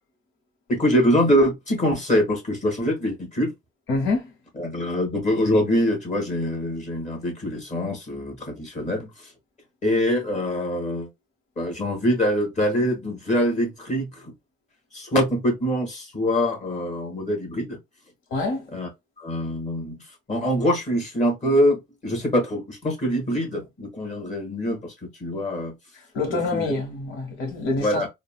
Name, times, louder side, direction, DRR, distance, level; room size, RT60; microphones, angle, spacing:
voice 1, 0.7-3.5 4.6-9.3 9.8-11.1 11.6-14.3 14.9-17.8 18.7-18.9 19.2-20.0 20.3-24.9 25.2-25.7 26.3-26.7 27.7-28.1, equal, 35° left, 1.6 m, -24 dB
voice 2, 3.9-4.3 18.3-18.6 25.9-28.0, left 3 dB, 85° left, 1.1 m, -26 dB
3.9 x 2.2 x 2.3 m
cardioid pair, 90°, 20 cm